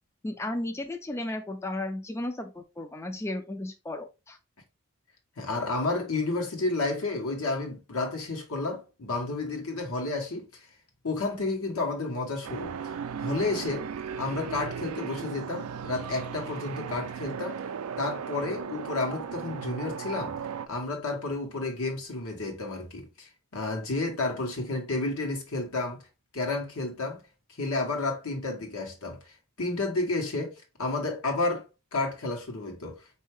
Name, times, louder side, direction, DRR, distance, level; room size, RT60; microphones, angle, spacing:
voice 1, 0.2-4.4, left 1 dB, 10° left, 0.3 m, -34 dB
voice 2, 5.4-10.5 11.0-12.9 13.2-13.9 14.2-17.6 18.0-20.3 20.7-26.0 26.3-27.2 27.6-29.2 29.6-31.7 31.9-33.0, left 3 dB, 80° left, 1.3 m, -31 dB
sound 1, 12.4-20.7, right 7 dB, 80° right, 0.4 m, -36 dB
4.4 x 2.7 x 3.2 m
head